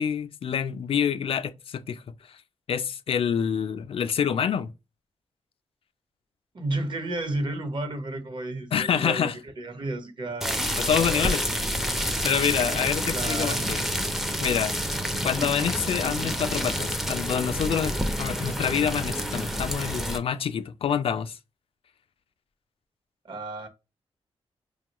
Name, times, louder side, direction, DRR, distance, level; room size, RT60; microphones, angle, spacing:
voice 1, 0.0-2.0 2.7-4.7 8.7-9.3 10.9-11.4 12.2-13.8 14.4-14.7 15.2-21.4, left 8 dB, 60° left, 0.4 m, -27 dB
voice 2, 6.5-11.5 13.1-13.8 23.2-23.7, right 2 dB, 50° right, 1.0 m, -33 dB
sound 1, 10.4-20.2, equal, 5° right, 0.5 m, -28 dB
5.1 x 2.3 x 2.9 m
cardioid pair, 90°, 11 cm